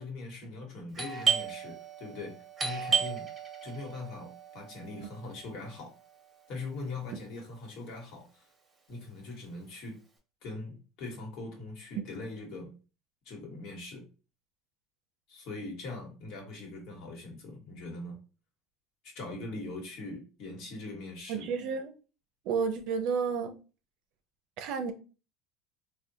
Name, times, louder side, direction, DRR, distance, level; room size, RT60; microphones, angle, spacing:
voice 1, 0.0-3.3 3.6-5.9 6.5-8.5 8.9-10.0 10.4-12.8 13.2-14.1 15.3-18.2 19.0-21.5, left 2 dB, 60° left, 1.2 m, -41 dB
Doorbell, 0.9-6.4, right 6 dB, 20° right, 1.0 m, -34 dB
voice 2, 21.3-21.9 22.4-23.5 24.6-24.9, right 5 dB, 65° right, 0.6 m, -31 dB
3.5 x 2.2 x 2.7 m
supercardioid pair, 130°, 0 cm